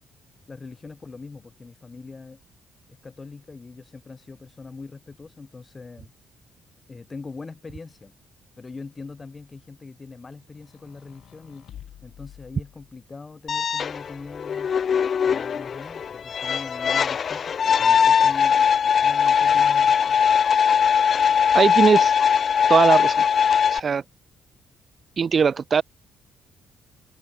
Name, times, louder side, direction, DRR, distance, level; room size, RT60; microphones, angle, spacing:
voice 1, 0.5-2.4 2.9-6.1 6.9-8.1 8.6-11.7 12.0-14.8 15.2-20.4, left 4 dB, 30° left, 2.4 m, -42 dB
sound 1, 10.5-13.2 14.1-15.1, left 11 dB, 70° left, 2.9 m, -49 dB
sound 2, 13.5-23.8, left 7 dB, 50° left, 0.4 m, -20 dB
voice 2, 21.5-22.1 22.7-23.2 23.7-24.0 25.2-25.8, right 6 dB, 45° right, 0.4 m, -19 dB
cardioid pair, 90°, 0 cm